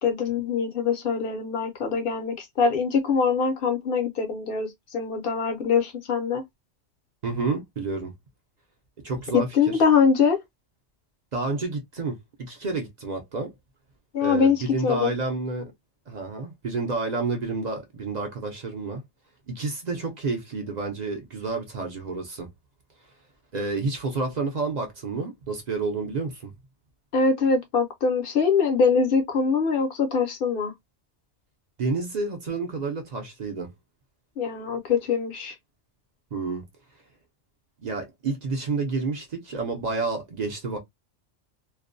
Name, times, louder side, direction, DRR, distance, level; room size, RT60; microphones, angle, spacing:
voice 1, 0.0-6.4 9.5-10.4 14.1-15.1 27.1-30.7 34.4-35.5, left 5 dB, 60° left, 0.7 m, -23 dB
voice 2, 7.2-8.1 9.0-9.8 11.3-13.5 14.2-15.7 16.1-19.0 19.5-22.5 23.5-26.5 31.8-33.7 36.3-36.6 37.8-40.8, right 3 dB, 50° right, 0.6 m, -30 dB
2.4 x 2.1 x 2.5 m
omnidirectional pair, 1.3 m